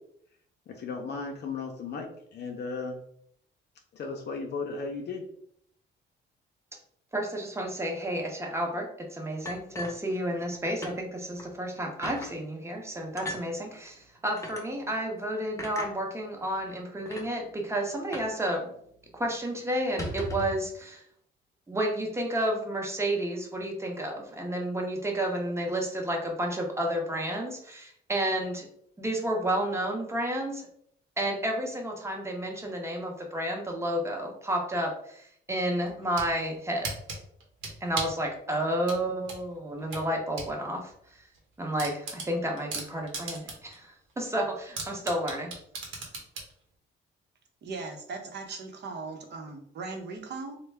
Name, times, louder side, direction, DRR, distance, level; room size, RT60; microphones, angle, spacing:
voice 1, 0.7-3.0 3.9-5.2, left 4 dB, 55° left, 2 dB, 0.6 m, -35 dB
voice 2, 7.1-18.7 19.1-21.0 21.7-28.7 29.0-30.6 31.2-36.9 37.8-40.9 41.6-45.5, right 1 dB, 15° right, 1 dB, 0.8 m, -31 dB
sound 1, 9.5-10.5 10.8-11.0 11.4-11.5 12.0-12.3 13.2-13.4 14.4-14.6 15.6-15.9 16.7-16.8 17.1-17.3 18.1-18.4 18.6-18.7 19.1-19.3 19.8-20.6, left 1 dB, 15° left, 0.8 m, -37 dB
sound 2, 35.9-36.3 36.8-38.2 38.9-40.5 40.9-41.0 41.3-41.4 41.8-43.7 44.1-44.2 44.8-46.5, right 3 dB, 85° right, 1.0 m, -36 dB
voice 3, 47.6-50.6, right 4 dB, 60° right, 3 dB, 0.8 m, -38 dB
3.4 x 2.2 x 3.3 m, 0.67 s
cardioid pair, 90°, 20 cm